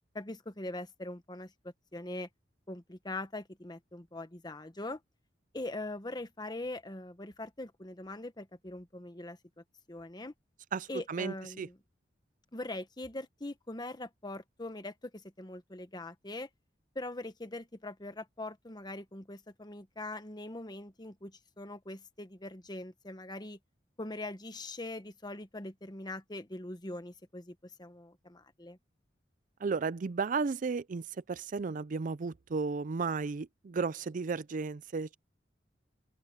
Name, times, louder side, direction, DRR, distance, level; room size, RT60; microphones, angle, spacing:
voice 1, 0.1-2.3 2.7-5.0 5.5-10.3 10.9-11.8 12.5-16.5 16.9-23.6 24.0-28.8, left 2 dB, 25° left, 1.2 m, -42 dB
voice 2, 10.7-11.7 29.6-35.1, right 4 dB, 45° right, 0.4 m, -34 dB
open air
head